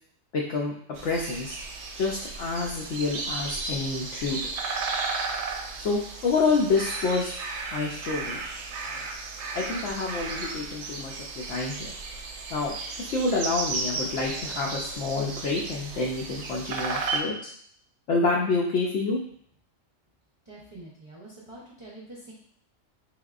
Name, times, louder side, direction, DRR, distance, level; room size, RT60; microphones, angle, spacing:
voice 1, 0.3-0.7 1.0-1.6 1.9-4.4 5.8-7.3 7.7-8.4 8.8-9.0 9.5-11.9 12.5-17.5 18.1-19.2, left 3 dB, 70° left, -2 dB, 0.9 m, -28 dB
sound 1, 0.9-17.2, right 4 dB, 70° right, 0.8 m, -34 dB
voice 2, 20.4-22.3, right 2 dB, 35° right, -5 dB, 0.5 m, -45 dB
3.5 x 3.5 x 2.4 m, 0.63 s
omnidirectional pair, 1.3 m